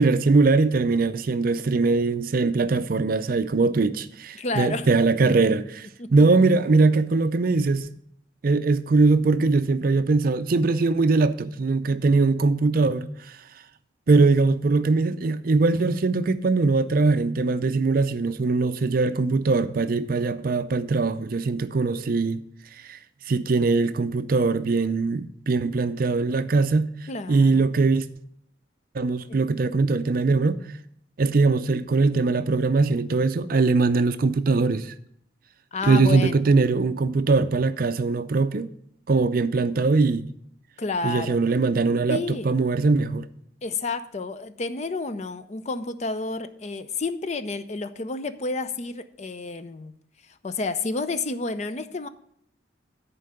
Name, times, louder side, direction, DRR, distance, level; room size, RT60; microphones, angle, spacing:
voice 1, 0.0-5.9 6.1-7.9 8.4-13.1 14.1-22.4 22.8-23.0 23.3-26.9 27.3-28.1 28.9-30.6 31.2-34.9 35.8-38.7 39.1-40.2 41.0-43.3, right 3 dB, 50° right, 0.4 m, -21 dB
voice 2, 4.3-4.9 6.0-6.2 14.2-14.3 27.1-27.6 29.3-29.4 35.7-36.4 40.8-41.4 42.1-42.5 43.6-49.9 50.4-52.1, left 3 dB, 35° left, 0.5 m, -30 dB
10.0 x 4.6 x 6.5 m
head